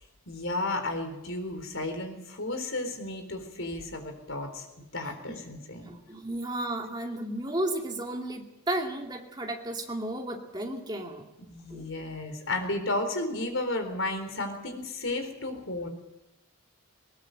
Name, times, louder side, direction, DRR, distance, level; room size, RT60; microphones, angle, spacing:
voice 1, 0.3-4.7 4.9-5.9 11.4-15.9, left 2 dB, 70° left, 6 dB, 4.1 m, -33 dB
voice 2, 5.9-11.3 11.7-11.9, right 1 dB, 20° right, 1 dB, 2.4 m, -33 dB
19.5 x 19.0 x 8.0 m, 0.95 s
head